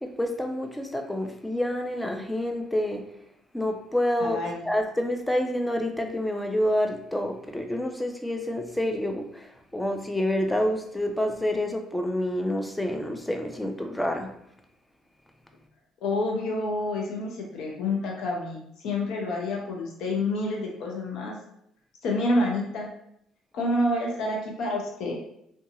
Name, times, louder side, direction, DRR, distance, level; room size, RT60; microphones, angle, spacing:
voice 1, 0.0-3.0 3.5-4.4 4.7-14.3, left 1 dB, 10° left, 4 dB, 0.4 m, -28 dB
voice 2, 4.2-4.6 16.0-21.3 22.0-22.9 23.5-25.2, left 1 dB, 75° left, -1 dB, 0.7 m, -28 dB
2.7 x 2.3 x 2.6 m, 0.75 s
supercardioid pair, 80°, 0 cm